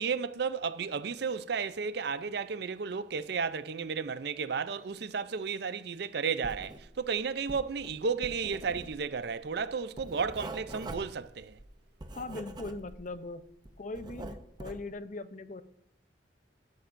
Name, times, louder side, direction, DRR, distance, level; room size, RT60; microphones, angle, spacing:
voice 1, 0.0-11.6, right 5 dB, 60° right, 0.5 m, -33 dB
Writing, 6.4-7.1 7.3-13.2 13.5-14.9, right 2 dB, 25° right, 0.7 m, -44 dB
voice 2, 12.1-13.5 13.8-15.6, left 2 dB, 40° left, 0.6 m, -40 dB
11.5 x 11.5 x 2.6 m
head